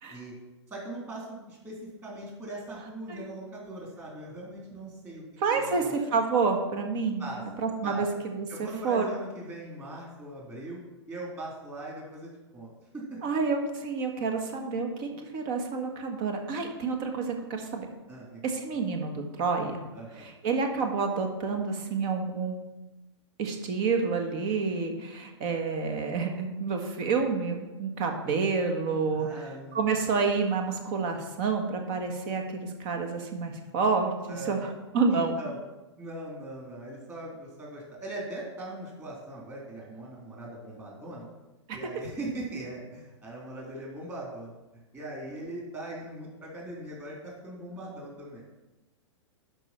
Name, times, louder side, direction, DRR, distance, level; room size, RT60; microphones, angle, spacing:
voice 1, 0.7-5.2 5.5-5.9 7.2-7.4 7.8-8.0 8.5-10.8 11.1-13.2 18.1-18.4 19.9-20.3 29.1-29.8 34.3-34.7 35.1-35.6 36.0-41.3 41.7-44.5 44.9-48.4, right 1 dB, 15° right, -3 dB, 3.5 m, -40 dB
voice 2, 5.4-7.3 7.6-9.0 13.2-17.9 18.4-19.8 20.2-22.5 23.4-29.3 29.7-35.3 41.7-41.8, right 4 dB, 40° right, 4 dB, 1.6 m, -29 dB
12.0 x 5.2 x 4.5 m, 1.0 s
figure-of-eight pair, 105°, 15 cm